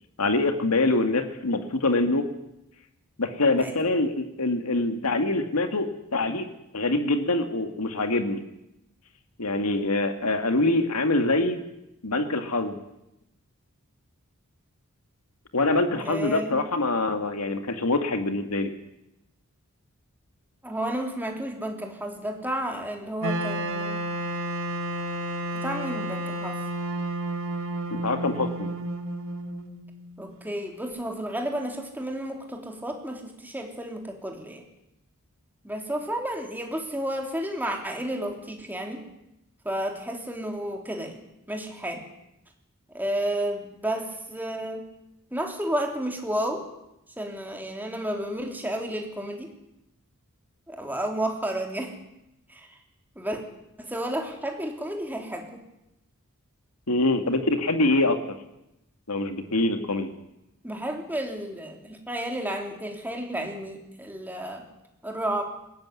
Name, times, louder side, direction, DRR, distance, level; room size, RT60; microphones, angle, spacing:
voice 1, 0.2-2.3 3.2-6.5 6.7-8.4 9.4-11.6 12.0-12.8 15.5-18.7 27.9-28.7 56.9-58.3 59.1-60.1, left 2 dB, 85° left, 7 dB, 2.0 m, -24 dB
voice 2, 16.0-16.6 20.6-24.1 25.5-26.6 30.2-34.6 35.6-39.0 39.6-41.2 41.5-42.0 42.9-44.9 45.3-46.7 47.2-49.5 50.7-51.9 52.5-52.8 53.1-53.4 53.8-55.6 60.6-64.7 65.0-65.4, right 1 dB, 10° right, 2 dB, 3.3 m, -32 dB
Wind instrument woodwind instrument, 23.2-30.2, right 1 dB, 60° right, 2.5 m, -31 dB
20.5 x 17.5 x 9.7 m, 0.87 s
head